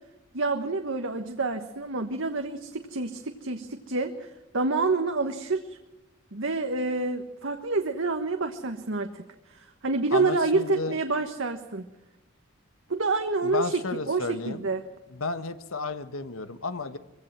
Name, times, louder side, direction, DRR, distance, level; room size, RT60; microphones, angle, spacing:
voice 1, 0.3-5.8 6.3-9.2 9.5-11.8 12.9-14.8, right 3 dB, 65° right, 5 dB, 1.3 m, -28 dB
voice 2, 10.1-11.0 13.4-14.6 15.1-17.0, left 3 dB, 90° left, 11 dB, 1.4 m, -32 dB
23.0 x 16.0 x 7.4 m, 1.0 s
head